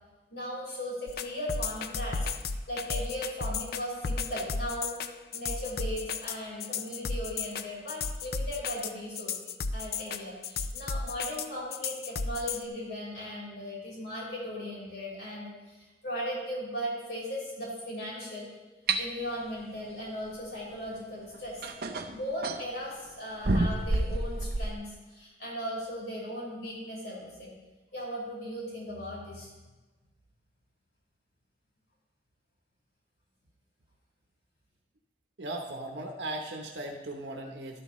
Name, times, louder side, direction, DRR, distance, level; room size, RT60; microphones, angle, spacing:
voice 1, 0.3-2.3 2.7-5.0 5.3-9.4 9.7-18.5 19.0-21.7 22.1-27.5 27.9-29.5, equal, 75° left, -4 dB, 4.4 m, -37 dB
sound 1, 1.1-12.6, left 5 dB, 60° left, 0.5 m, -33 dB
sound 2, 18.9-19.0 20.9-21.0 21.6-22.7 23.4-24.7, right 2 dB, 55° right, 0.7 m, -28 dB
voice 2, 35.4-37.8, right 1 dB, 85° right, 2 dB, 0.9 m, -37 dB
12.5 x 12.0 x 3.1 m, 1.2 s
head